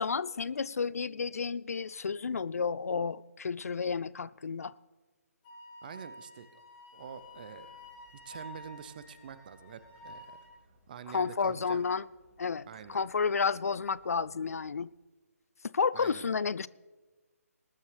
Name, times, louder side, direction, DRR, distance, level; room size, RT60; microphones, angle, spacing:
voice 1, 0.0-4.7 11.1-12.0 12.4-14.9 15.7-16.7, left 5 dB, 70° left, 0.4 m, -31 dB
Wind instrument woodwind instrument, 5.4-10.6, left 2 dB, 25° left, 3.0 m, -51 dB
voice 2, 5.8-6.6 6.9-7.8 8.2-10.4 10.9-11.8 12.7-13.0 15.9-16.2, right 7 dB, 35° right, 0.6 m, -46 dB
sound 1, 7.0-14.8, left 1 dB, 15° right, 5.0 m, -66 dB
19.5 x 9.5 x 3.3 m
figure-of-eight pair, 150°, 9 cm